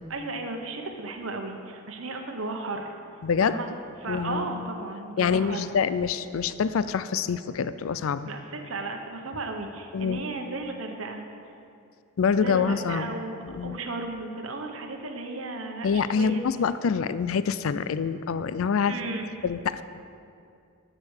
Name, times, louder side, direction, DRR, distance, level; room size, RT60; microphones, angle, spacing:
voice 1, 0.1-3.0 3.4-3.7 4.0-5.7 8.3-11.2 12.4-16.4 18.9-19.3, right 3 dB, 65° right, 4 dB, 1.0 m, -35 dB
voice 2, 3.2-3.6 4.1-4.7 5.2-8.3 9.9-10.2 12.2-13.1 13.4-13.8 15.8-18.9 19.4-19.8, left 6 dB, 70° left, 14 dB, 0.4 m, -26 dB
11.5 x 6.6 x 6.5 m, 2.5 s
head